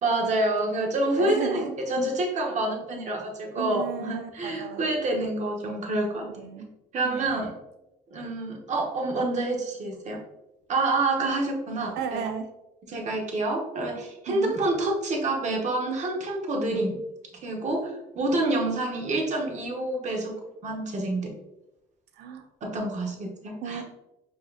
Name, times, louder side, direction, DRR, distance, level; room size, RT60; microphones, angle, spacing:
voice 1, 0.0-6.3 6.9-7.5 8.1-10.2 10.7-12.2 12.9-17.0 17.4-21.3 22.6-23.8, right 2 dB, 45° right, 1 dB, 0.9 m, -27 dB
voice 2, 1.2-1.7 3.5-4.8 6.2-6.7 7.0-7.4 12.0-12.5 14.3-14.6 22.1-22.5 23.6-23.8, right 7 dB, 75° right, 7 dB, 0.5 m, -34 dB
4.8 x 2.8 x 2.4 m, 0.92 s
cardioid pair, 110°, 17 cm